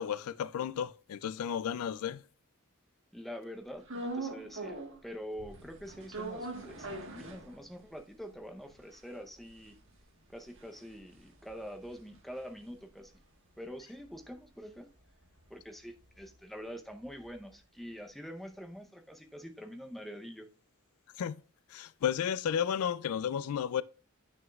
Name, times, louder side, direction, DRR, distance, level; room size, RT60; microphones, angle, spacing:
voice 1, 0.0-2.2 21.2-21.4 21.7-23.8, left 8 dB, 80° left, 0.3 m, -33 dB
voice 2, 3.1-9.8 10.3-13.1 13.6-14.9 15.5-20.5, equal, ahead, 0.7 m, -45 dB
sound 1, 3.9-5.1 5.4-8.0 8.3-8.4 8.6-13.1 13.5-17.5, right 2 dB, 60° right, 1.5 m, -44 dB
9.1 x 6.1 x 2.4 m
head